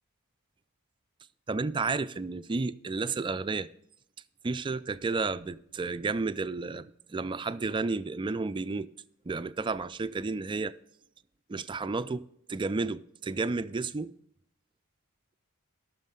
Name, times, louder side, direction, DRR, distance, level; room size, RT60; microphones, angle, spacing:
voice 1, 1.5-3.7 4.4-8.9 9.3-10.7 11.5-12.2 12.5-14.1, right 3 dB, 20° right, 0.3 m, -32 dB
17.5 x 6.3 x 3.8 m
head